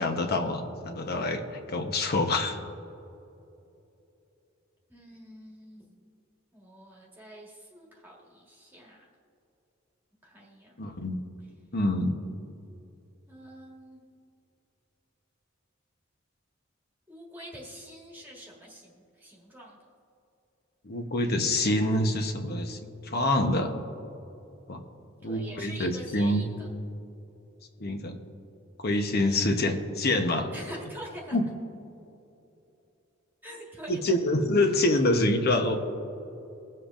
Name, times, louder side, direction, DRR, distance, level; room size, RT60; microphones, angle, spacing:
voice 1, 0.0-2.6 10.8-11.2 11.7-12.2 20.8-23.7 24.7-24.8 25.2-26.5 27.8-28.2 28.8-30.5 31.3-31.4 33.9-35.8, left 1 dB, 50° left, 5 dB, 1.0 m, -26 dB
voice 2, 4.9-5.9 6.5-9.1 10.2-11.1 13.3-14.0 17.1-19.8 25.2-26.7 30.5-31.4 33.4-34.2, equal, 10° right, -3 dB, 1.5 m, -46 dB
22.5 x 7.7 x 2.5 m, 2.9 s
head